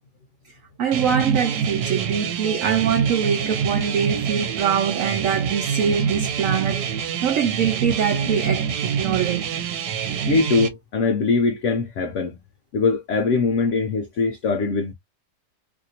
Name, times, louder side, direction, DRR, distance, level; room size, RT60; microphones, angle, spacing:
voice 1, 0.4-9.4, right 7 dB, 65° right, 0.9 m, -24 dB
sound 1, 0.9-10.7, right 7 dB, 90° right, 1.3 m, -26 dB
voice 2, 10.3-12.4 12.7-14.9, left 4 dB, 65° left, 0.7 m, -22 dB
2.8 x 2.6 x 2.7 m
omnidirectional pair, 1.8 m